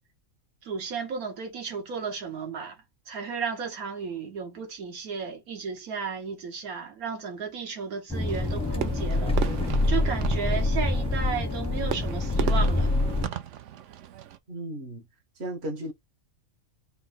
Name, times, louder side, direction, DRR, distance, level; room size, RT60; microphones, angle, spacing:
voice 1, 0.6-2.8 3.1-9.4 9.9-12.9, right 6 dB, 85° right, 1.6 m, -34 dB
sound 1, 8.1-13.3, left 2 dB, 5° left, 0.5 m, -26 dB
Fireworks, 8.3-14.4, right 11 dB, 65° right, 0.8 m, -36 dB
voice 2, 14.5-15.1 15.4-15.9, right 1 dB, 50° right, 1.5 m, -35 dB
4.0 x 2.1 x 4.1 m
omnidirectional pair, 1.5 m